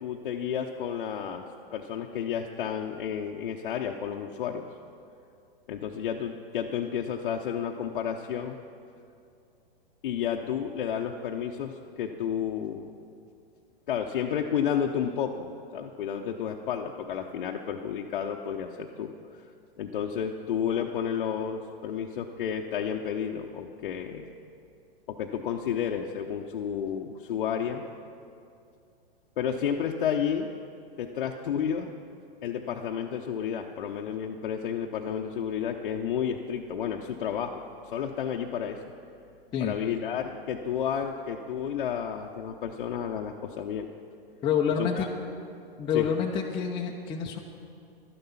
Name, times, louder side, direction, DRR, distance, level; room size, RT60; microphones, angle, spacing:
voice 1, 0.0-1.4 1.7-4.6 5.7-8.6 10.0-13.0 13.9-19.4 19.8-24.3 25.1-27.8 29.4-30.5 31.0-32.0 32.4-37.6 37.9-38.8 39.6-43.9 44.8-45.1 45.9-46.1, left 8 dB, 60° left, 1 dB, 0.8 m, -31 dB
voice 2, 44.4-45.1 45.8-47.4, left 7 dB, 15° left, -1 dB, 0.6 m, -27 dB
12.0 x 11.0 x 5.7 m, 2.5 s
hypercardioid pair, 120°, 30 cm